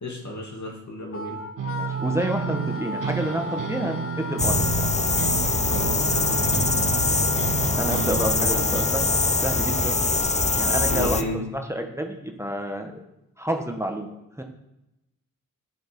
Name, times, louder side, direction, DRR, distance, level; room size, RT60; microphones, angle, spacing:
voice 1, 0.0-1.4 5.7-6.6 10.9-11.4, left 1 dB, 60° left, 0 dB, 2.5 m, -33 dB
Wind instrument woodwind instrument, 1.1-11.1, left 3 dB, 40° left, 1.1 m, -35 dB
sound 1, 1.6-8.8, right 8 dB, 75° right, 0.5 m, -31 dB
voice 2, 1.8-4.8 7.3-7.4 7.7-9.1 9.4-10.0 10.6-13.0 13.4-14.1 14.4-14.5, right 1 dB, 10° right, 4 dB, 1.2 m, -29 dB
sound 2, 4.4-11.2, left 3 dB, 20° left, 0.6 m, -23 dB
9.9 x 7.6 x 5.3 m, 0.91 s
cardioid pair, 60°, 33 cm